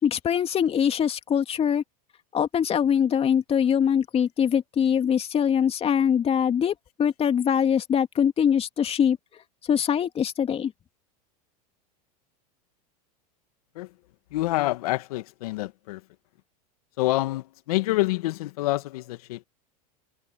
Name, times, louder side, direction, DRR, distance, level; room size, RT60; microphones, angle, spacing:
voice 1, 0.0-1.8 2.3-9.2 9.7-10.7, left 8 dB, 30° left, 2.6 m, -23 dB
voice 2, 14.3-16.0 17.0-19.4, left 18 dB, 70° left, 2.1 m, -27 dB
hypercardioid pair, 95°, 20 cm